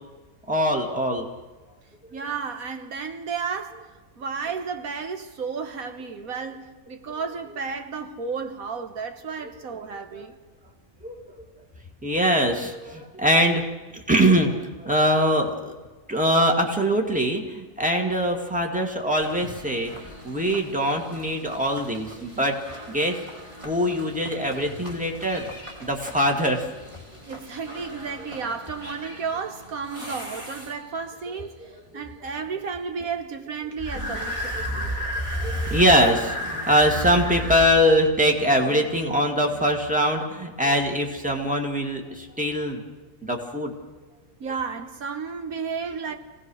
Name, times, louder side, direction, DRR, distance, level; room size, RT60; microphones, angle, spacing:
voice 1, 0.5-1.3 11.0-11.2 12.0-13.6 13.9-15.7 16.1-19.9 20.2-22.6 22.9-23.2 23.6-25.5 25.8-26.6 31.9-32.0 35.4-42.8 43.2-43.7, equal, 5° right, 2.2 m, -22 dB
voice 2, 2.1-10.4 27.3-34.6 44.4-46.1, right 5 dB, 75° right, 1.6 m, -33 dB
sound 1, 19.2-31.1 33.8-37.7, equal, 20° right, 3.5 m, -35 dB
24.5 x 17.5 x 6.4 m
omnidirectional pair, 1.5 m